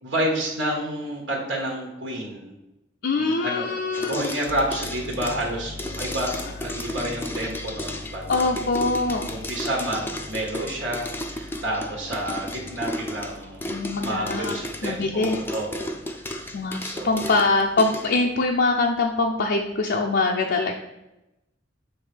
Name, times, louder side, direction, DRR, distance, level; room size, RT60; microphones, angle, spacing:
voice 1, 0.0-2.5 3.1-8.8 9.3-16.4 16.8-17.2, right 1 dB, 75° right, -2 dB, 1.5 m, -30 dB
voice 2, 3.0-4.3 8.3-9.3 13.7-14.5 14.8-15.4 16.5-20.7, left 3 dB, 60° left, 0 dB, 0.5 m, -23 dB
sound 1, 3.9-18.1, left 1 dB, 10° left, 0.5 m, -34 dB
sound 2, 4.5-19.6, left 2 dB, 10° right, 0.9 m, -43 dB
7.3 x 3.2 x 5.0 m, 0.93 s
head